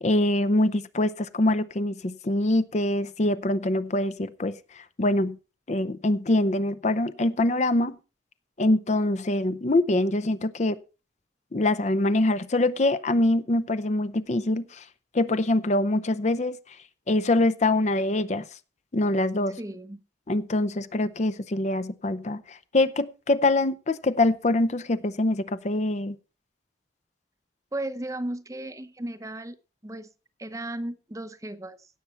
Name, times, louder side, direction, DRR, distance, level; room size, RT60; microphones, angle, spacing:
voice 1, 0.0-4.6 5.0-5.4 5.7-8.0 8.6-10.8 11.5-14.8 15.1-16.6 17.1-18.4 18.9-19.6 20.3-26.2, left 2 dB, 40° left, 0.6 m, -24 dB
voice 2, 19.6-20.0 27.7-29.6 29.8-30.1 30.4-31.9, right 1 dB, 20° right, 0.7 m, -35 dB
17.0 x 7.0 x 4.3 m
head